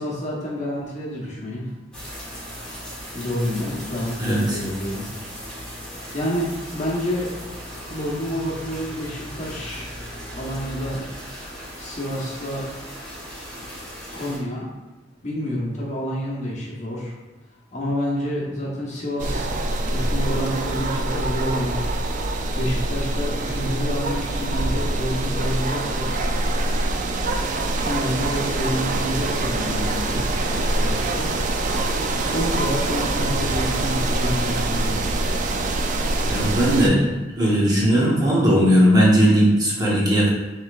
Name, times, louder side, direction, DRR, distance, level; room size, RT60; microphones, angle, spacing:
voice 1, 0.0-1.7 3.1-5.1 6.1-7.3 7.9-10.0 10.4-11.0 11.8-12.6 13.6-13.7 14.1-14.7 15.2-17.1 17.7-19.5 19.9-21.8 22.5-26.2 27.4-30.2 30.5-31.4 32.2-35.0, equal, 40° left, -4 dB, 1.0 m, -28 dB
sound 1, 1.9-14.4, equal, 5° left, 1.3 m, -37 dB
voice 2, 4.2-4.6 36.3-40.3, equal, 20° right, -6 dB, 1.0 m, -18 dB
sound 2, 19.2-36.9, right 2 dB, 45° right, 0.4 m, -24 dB
5.4 x 3.2 x 2.4 m, 1.2 s
head